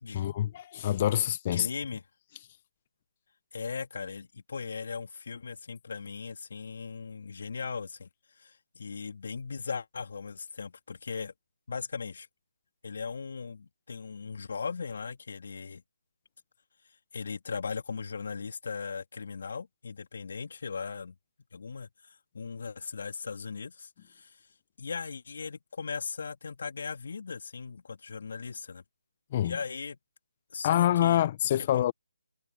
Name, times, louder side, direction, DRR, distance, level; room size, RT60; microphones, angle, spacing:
voice 1, 0.1-1.7 29.3-29.6 30.6-31.9, left 12 dB, 30° left, 1.0 m, -26 dB
voice 2, 1.5-2.0 3.5-8.1 8.4-11.3 11.7-12.3 12.8-15.8 17.1-21.1 21.5-24.4 24.8-28.8 29.4-30.0 30.5-31.2 31.6-31.9, left 5 dB, 55° left, 2.9 m, -38 dB
figure-of-eight pair, 155°, 0 cm